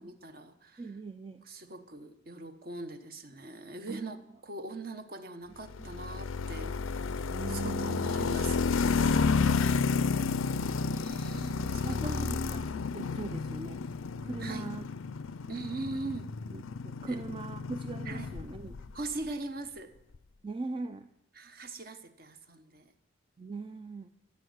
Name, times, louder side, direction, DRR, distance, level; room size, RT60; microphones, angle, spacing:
voice 1, 0.0-1.0 1.4-7.1 7.5-9.7 11.0-12.3 14.4-14.7 15.5-16.3 17.1-17.2 18.0-18.3 18.9-19.9 21.3-22.9, right 3 dB, 45° right, 9 dB, 1.1 m, -41 dB
voice 2, 0.8-1.4 3.9-4.2 5.8-5.9 7.3-8.3 11.8-13.8 14.2-14.9 16.5-18.8 20.4-21.1 23.4-24.1, right 3 dB, 25° right, 10 dB, 0.4 m, -41 dB
sound 1, 5.7-18.9, left 5 dB, 85° left, 0.5 m, -31 dB
14.5 x 8.4 x 8.0 m, 0.83 s
head